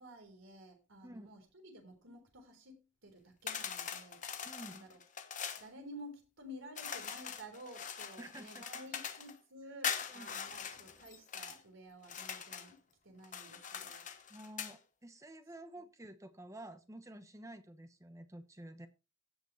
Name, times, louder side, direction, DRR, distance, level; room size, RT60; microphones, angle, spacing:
voice 1, 0.0-4.4 4.6-5.0 5.6-14.1, equal, 75° right, 3.9 m, -53 dB
sound 1, 3.5-5.7 6.7-9.3 9.8-11.6 12.0-12.7 13.2-14.8, left 7 dB, 35° left, 1.1 m, -42 dB
voice 2, 4.4-4.9 8.2-8.7 9.0-9.1 10.1-10.3 14.3-18.9, right 1 dB, 15° right, 1.0 m, -50 dB
16.5 x 6.0 x 3.2 m
head